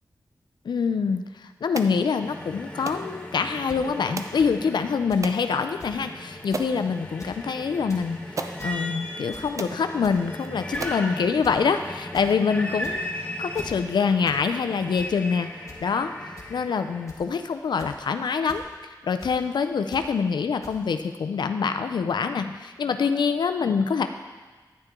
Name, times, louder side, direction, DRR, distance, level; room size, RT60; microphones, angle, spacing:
voice 1, 0.7-13.0 13.4-24.1, left 5 dB, 80° left, 8 dB, 0.4 m, -25 dB
sound 1, 1.7-2.0 2.9-3.1 4.2-4.4 5.2-5.4 6.0-6.1 6.5-6.8 7.8-7.9 8.4-8.6 9.2-9.3 9.6-9.8 10.4-10.5 10.8-11.1, right 3 dB, 45° right, 0.5 m, -34 dB
sound 2, 2.2-17.1, left 1 dB, 15° left, 1.1 m, -37 dB
sound 3, 3.7-3.8 4.4-4.5 5.1-5.3 5.5-5.6 5.8-6.0 6.5-6.7 7.1-7.4 7.7-8.1 8.4-8.8 9.3-9.6 10.0-10.3 10.7-11.0 11.4-11.6 11.9-12.3 12.8-13.2 13.5-13.8 14.3-14.4 14.7-15.1 15.7-15.8 16.4-16.5 17.1-17.3 17.8-18.1 18.5-18.6 19.2-19.3 19.9-20.1 20.6-20.7, left 2 dB, 40° left, 1.3 m, -44 dB
9.6 x 6.7 x 3.6 m, 1.4 s
wide cardioid pair, 75°, 8 cm